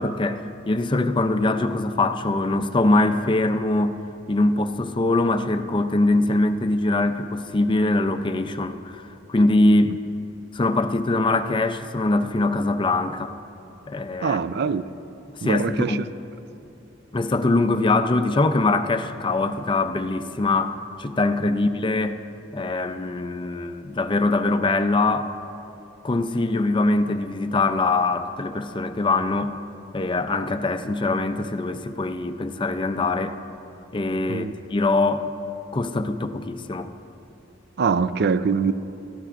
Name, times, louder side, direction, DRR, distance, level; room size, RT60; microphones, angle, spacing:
voice 1, 0.0-3.9 4.3-9.0 9.3-10.0 10.5-13.3 13.9-14.4 15.4-16.0 17.1-22.2 22.5-25.3 26.0-29.5 29.9-33.4 33.9-35.3 35.7-36.9, left 2 dB, 25° left, 9 dB, 0.5 m, -22 dB
voice 2, 14.2-14.8 15.4-16.0 34.3-34.5 37.8-38.7, right 5 dB, 60° right, 14 dB, 0.4 m, -23 dB
22.0 x 13.5 x 2.5 m, 2.8 s
head